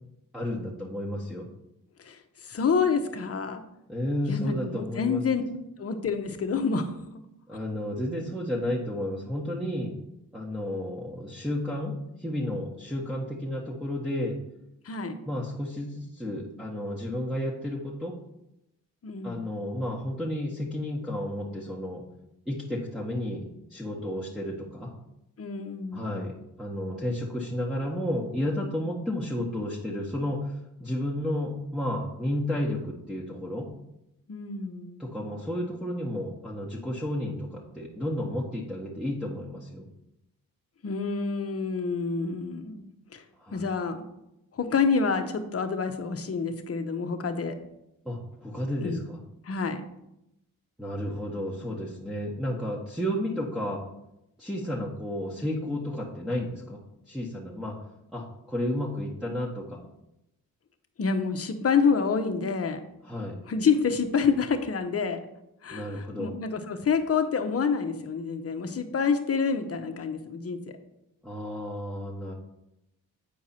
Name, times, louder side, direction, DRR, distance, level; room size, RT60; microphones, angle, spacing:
voice 1, 0.3-1.5 3.9-5.2 7.5-9.9 10.3-14.4 15.2-18.2 19.2-22.0 22.4-24.9 25.9-33.7 35.0-39.8 43.4-43.6 48.0-49.2 50.8-53.8 54.4-56.8 57.1-57.8 58.1-59.8 63.0-63.4 65.7-66.3 71.2-72.3, left 1 dB, ahead, -6 dB, 1.4 m, -32 dB
voice 2, 2.0-3.6 4.3-5.4 5.8-7.0 14.8-15.2 19.0-19.5 25.4-26.2 34.3-35.0 40.8-43.2 43.5-44.0 44.5-47.6 48.8-49.0 49.4-49.8 61.0-62.8 63.5-65.2 65.6-70.6, left 5 dB, 40° left, 7 dB, 1.0 m, -28 dB
8.6 x 4.7 x 4.3 m, 0.85 s
supercardioid pair, 60°, 35 cm